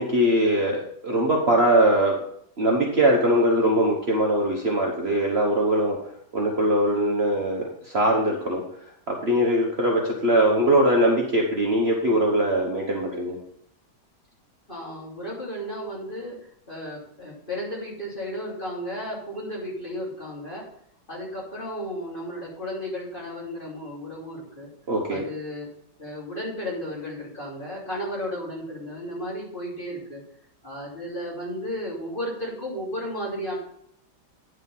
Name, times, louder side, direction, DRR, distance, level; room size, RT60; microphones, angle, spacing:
voice 1, 0.0-2.1 2.6-6.0 6.3-8.6 9.1-13.4 24.9-25.2, right 1 dB, 40° right, -1 dB, 1.3 m, -21 dB
voice 2, 14.7-16.4 16.7-20.6 21.1-24.7 25.1-25.7 26.0-30.2 30.6-33.6, equal, 30° left, -5 dB, 3.2 m, -34 dB
9.8 x 5.0 x 5.5 m, 0.70 s
omnidirectional pair, 1.8 m